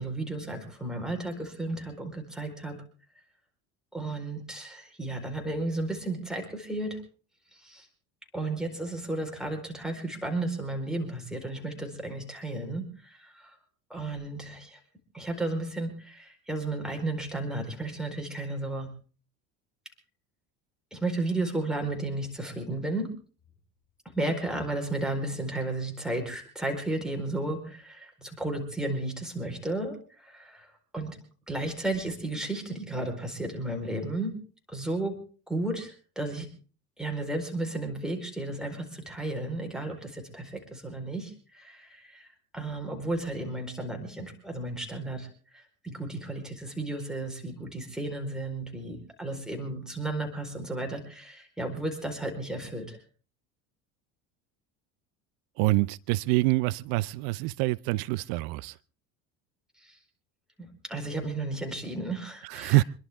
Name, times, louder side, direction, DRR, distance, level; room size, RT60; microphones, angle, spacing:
voice 1, 0.0-2.8 3.9-7.0 7.6-7.9 8.3-13.6 13.9-14.8 15.1-18.9 20.9-23.1 24.1-31.2 31.5-34.3 34.7-35.1 35.5-36.5 37.0-42.3 42.5-53.0 59.8-60.0 60.6-62.8, right 2 dB, ahead, 4.5 m, -33 dB
voice 2, 55.6-58.8 62.4-62.8, right 20 dB, 75° right, 0.6 m, -26 dB
26.5 x 11.5 x 3.6 m
supercardioid pair, 105°, 35 cm